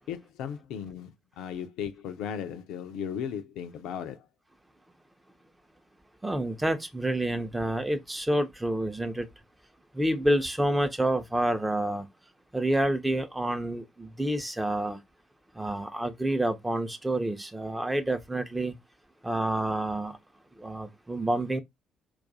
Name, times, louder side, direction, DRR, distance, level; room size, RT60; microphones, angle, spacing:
voice 1, 0.1-1.1 1.4-4.3, left 8 dB, 60° left, 0.4 m, -36 dB
voice 2, 6.2-9.3 9.9-12.1 12.5-15.0 15.5-18.7 19.2-20.2 20.6-21.6, right 1 dB, 10° right, 0.6 m, -28 dB
2.3 x 2.3 x 3.9 m
figure-of-eight pair, 45°, 0 cm